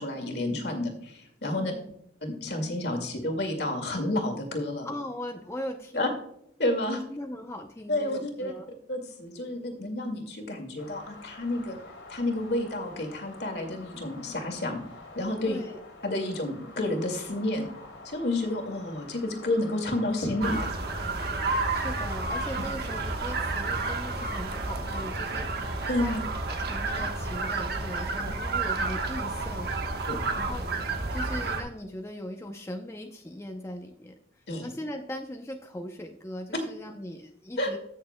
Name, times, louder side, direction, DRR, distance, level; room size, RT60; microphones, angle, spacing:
voice 1, 0.0-1.7 2.2-4.9 5.9-6.1 6.6-7.0 7.9-8.5 8.9-11.8 12.1-14.8 15.2-15.6 16.0-17.7 18.0-20.7 25.9-26.2 30.1-30.2 34.5-34.7 37.6-37.7, left 1 dB, 60° left, 3 dB, 2.1 m, -30 dB
voice 2, 1.6-1.9 4.8-6.2 7.1-8.7 15.5-15.8 21.7-26.1 26.5-29.7 30.4-30.7 31.1-37.8, left 1 dB, 15° left, 3 dB, 0.6 m, -39 dB
sound 1, 10.8-26.2, left 2 dB, 90° left, 3.0 m, -48 dB
sound 2, 20.4-31.6, right 3 dB, 55° right, 1.2 m, -30 dB
15.5 x 6.6 x 2.2 m, 0.72 s
head